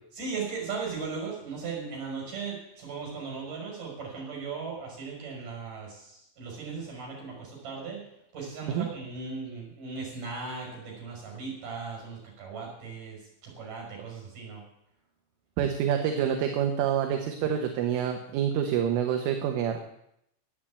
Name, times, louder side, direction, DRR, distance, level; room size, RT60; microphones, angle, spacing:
voice 1, 0.2-8.0 8.3-14.6, right 5 dB, 40° right, 0 dB, 7.1 m, -37 dB
voice 2, 15.6-19.8, right 9 dB, 75° right, 4 dB, 3.5 m, -27 dB
12.0 x 9.4 x 8.7 m, 0.78 s
omnidirectional pair, 5.9 m